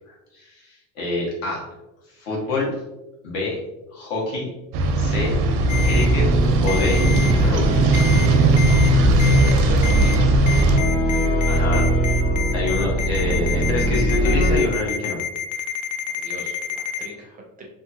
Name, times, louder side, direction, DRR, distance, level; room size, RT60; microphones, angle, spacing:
voice 1, 0.3-1.6 2.1-2.7 3.2-3.6 3.9-4.5 4.9-5.3 5.8-6.2 6.6-7.0 7.4-7.9 11.1-11.9 12.5-15.2, left 2 dB, 80° left, -3 dB, 1.2 m, -26 dB
sound 1, 4.7-10.8, right 2 dB, 80° right, 0.5 m, -18 dB
Ringtone, 5.7-6.0 6.7-7.3 7.9-8.3 8.6-8.9 9.2-9.5 9.8-10.2 10.5-17.1, left 8 dB, 55° left, 0.5 m, -28 dB
sound 2, 5.7-14.6, right 1 dB, 25° left, 0.7 m, -23 dB
voice 2, 8.7-10.3 16.1-17.7, right 1 dB, 25° right, 1 dB, 0.4 m, -39 dB
2.8 x 2.4 x 2.6 m, 1.0 s
cardioid pair, 145°, 36 cm